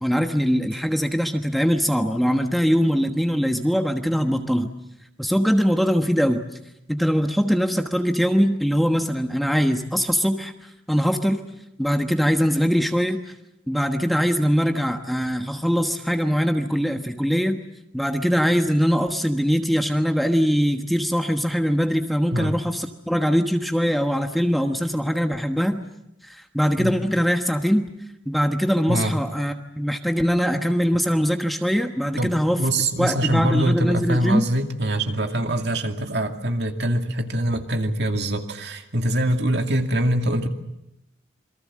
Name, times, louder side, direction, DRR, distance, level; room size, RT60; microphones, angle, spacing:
voice 1, 0.0-4.7 5.2-6.4 6.9-10.5 10.9-11.4 11.8-13.2 13.7-17.6 17.9-25.8 26.2-27.9 28.3-32.6 33.0-34.4, equal, ahead, 5 dB, 1.2 m, -22 dB
voice 2, 32.2-40.5, right 1 dB, 60° right, 4 dB, 2.4 m, -24 dB
28.0 x 23.0 x 7.5 m, 0.84 s
head